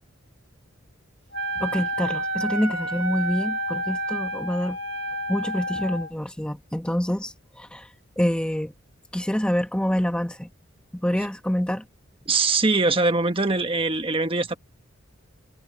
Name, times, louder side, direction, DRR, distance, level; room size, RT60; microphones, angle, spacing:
Wind instrument woodwind instrument, 1.3-6.1, right 1 dB, 60° right, 2.7 m, -29 dB
voice 1, 1.6-4.8 5.3-8.7 9.1-10.5 10.9-11.8, equal, 5° left, 1.0 m, -26 dB
voice 2, 12.3-14.6, right 3 dB, 25° right, 1.3 m, -22 dB
head